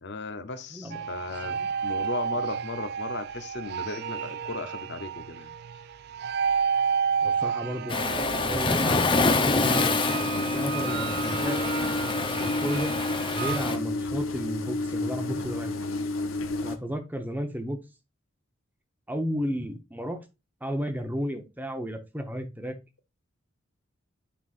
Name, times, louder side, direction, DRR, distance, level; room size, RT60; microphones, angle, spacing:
voice 1, 0.0-5.5, left 3 dB, 55° left, 0.9 m, -36 dB
sound 1, 0.9-13.6, right 6 dB, 50° right, 0.3 m, -31 dB
voice 2, 7.2-11.7 12.3-12.9 13.3-15.7 16.6-17.8 19.1-20.2 20.6-22.8, equal, 10° right, 0.9 m, -33 dB
Waves surf, 7.9-13.8, left 3 dB, 25° left, 0.7 m, -27 dB
sound 2, 9.4-16.8, left 2 dB, 80° left, 1.0 m, -31 dB
8.6 x 5.6 x 2.5 m
head